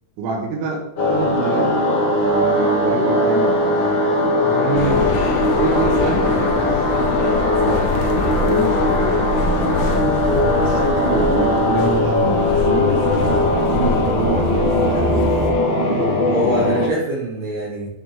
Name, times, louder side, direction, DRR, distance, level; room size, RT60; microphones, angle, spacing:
voice 1, 0.2-3.9 5.4-6.8 7.6-13.0 13.4-14.7, right 3 dB, 85° right, 0 dB, 3.9 m, -27 dB
sound 1, 1.0-16.9, left 1 dB, 50° left, 1.3 m, -19 dB
voice 2, 4.4-5.2 16.3-17.9, right 2 dB, 65° right, -5 dB, 2.8 m, -24 dB
sound 2, 4.8-15.5, left 3 dB, 80° left, 3.5 m, -24 dB
9.2 x 6.1 x 3.5 m, 0.88 s
omnidirectional pair, 5.9 m